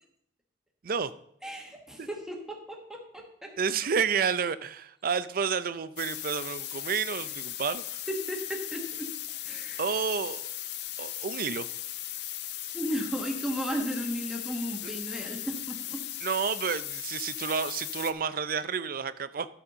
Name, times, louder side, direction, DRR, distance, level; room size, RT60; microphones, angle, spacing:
voice 1, 1.4-3.5 8.1-9.1 9.4-9.8 12.7-16.0, equal, 5° right, 1 dB, 1.2 m, -35 dB
voice 2, 3.6-8.0 9.8-10.5 11.0-11.7 16.2-19.5, right 6 dB, 50° right, 14 dB, 0.5 m, -30 dB
sound 1, 6.0-18.1, left 12 dB, 60° left, 0.6 m, -37 dB
12.5 x 4.2 x 6.6 m, 0.70 s
head